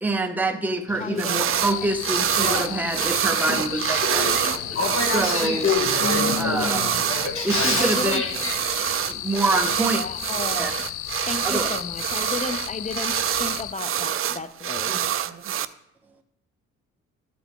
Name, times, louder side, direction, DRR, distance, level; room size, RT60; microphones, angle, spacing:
voice 1, 0.0-4.6 5.0-5.7 6.4-7.0 7.4-8.2 9.0-10.1 10.6-10.7 11.4-11.7, right 2 dB, 5° right, 5 dB, 0.8 m, -26 dB
Male speech man speaking / Female speech woman speaking / Conversation, 0.9-8.5, left 4 dB, 45° left, 2.1 m, -28 dB
voice 2, 1.0-1.5 6.0-7.1 7.8-8.2 9.9-10.8 11.3-13.1 13.4-15.0, left 3 dB, 25° left, 11 dB, 0.5 m, -32 dB
sound 1, 1.2-1.7 2.0-15.7, right 10 dB, 45° right, 0.5 m, -26 dB
sound 2, 1.5-13.7, left 13 dB, 80° left, 0.5 m, -34 dB
voice 3, 11.1-11.4 12.2-12.3 14.8-15.5, right 5 dB, 65° right, 4 dB, 1.9 m, -44 dB
13.5 x 5.9 x 3.6 m, 0.76 s
cardioid pair, 90°, 30 cm